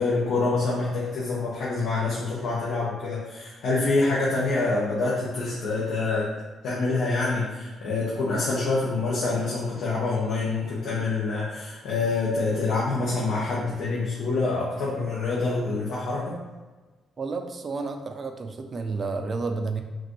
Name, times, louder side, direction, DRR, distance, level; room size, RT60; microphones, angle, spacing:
voice 1, 0.0-6.3 6.6-16.4, left 3 dB, 80° left, -7 dB, 1.0 m, -26 dB
voice 2, 17.2-19.8, right 4 dB, 40° right, 5 dB, 0.5 m, -31 dB
5.9 x 2.6 x 3.0 m, 1.3 s
cardioid pair, 90°, 0 cm